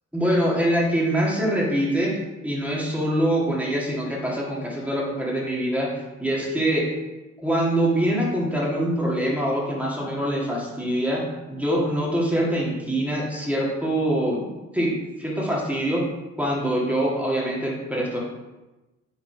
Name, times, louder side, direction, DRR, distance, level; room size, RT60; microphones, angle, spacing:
voice 1, 0.1-2.1 2.4-6.9 7.4-11.2 11.5-14.5 14.7-16.0 16.4-18.2, right 1 dB, 5° right, -4 dB, 2.1 m, -24 dB
6.2 x 4.1 x 5.6 m, 1.1 s
cardioid pair, 90°, 30 cm